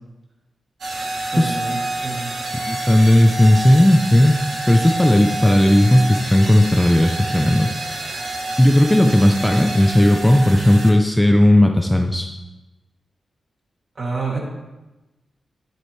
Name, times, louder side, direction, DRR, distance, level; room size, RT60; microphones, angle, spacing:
sound 1, 0.8-10.9, right 2 dB, 65° right, 2.0 m, -28 dB
voice 1, 1.2-2.3 14.0-14.4, right 3 dB, 40° right, -3 dB, 2.5 m, -28 dB
voice 2, 2.7-4.4 4.7-8.0 8.6-12.3, left 1 dB, 10° left, 4 dB, 0.5 m, -15 dB
11.5 x 7.7 x 3.3 m, 1.1 s
wide cardioid pair, 125°, 0 cm